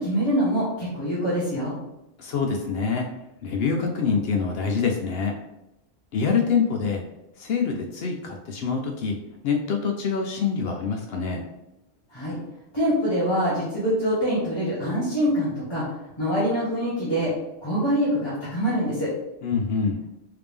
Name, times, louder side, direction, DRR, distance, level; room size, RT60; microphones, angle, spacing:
voice 1, 0.0-1.7 12.1-12.4 12.7-15.8 16.2-17.3 17.6-19.1, equal, 25° left, -11 dB, 1.1 m, -24 dB
voice 2, 2.2-3.1 3.4-5.3 6.1-7.0 7.4-9.2 9.4-11.4 19.4-20.0, left 5 dB, 65° left, 2 dB, 0.7 m, -25 dB
3.4 x 2.8 x 3.4 m, 0.90 s
omnidirectional pair, 1.2 m